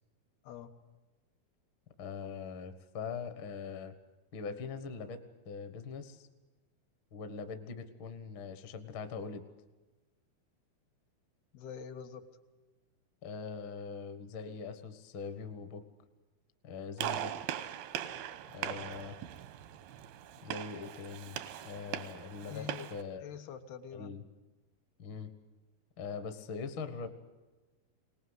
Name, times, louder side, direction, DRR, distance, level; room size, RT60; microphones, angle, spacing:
voice 1, 2.0-3.9 4.3-6.3 7.1-9.4 13.2-15.8 16.6-17.3 18.5-19.2 20.4-21.4 21.6-23.3 23.9-24.2 25.0-25.3 26.0-27.1, left 5 dB, 55° left, 9 dB, 1.4 m, -42 dB
voice 2, 11.5-12.3 22.5-22.9 23.2-24.2, left 8 dB, 80° left, 5 dB, 3.3 m, -45 dB
Gunshot gunfire, 17.0-23.0, right 11 dB, 85° right, 3.0 m, -40 dB
23.0 x 19.0 x 8.0 m, 1.2 s
omnidirectional pair, 4.4 m